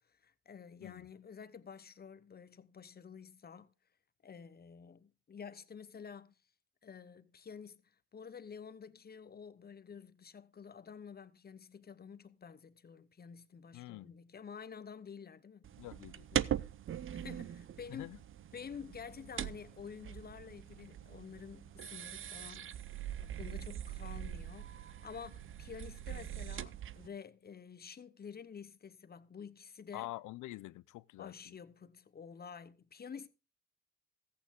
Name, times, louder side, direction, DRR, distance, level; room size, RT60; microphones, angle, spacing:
voice 1, 0.1-3.7 4.2-6.3 6.8-15.7 17.1-18.1 18.5-30.1 31.2-33.3, left 6 dB, 30° left, 0.8 m, -50 dB
voice 2, 13.7-14.1 15.8-16.4 17.9-18.2 29.9-31.6, left 17 dB, 80° left, 0.5 m, -46 dB
sound 1, 15.6-27.1, right 10 dB, 45° right, 0.5 m, -42 dB
14.5 x 8.5 x 3.6 m
cardioid pair, 90°, 30 cm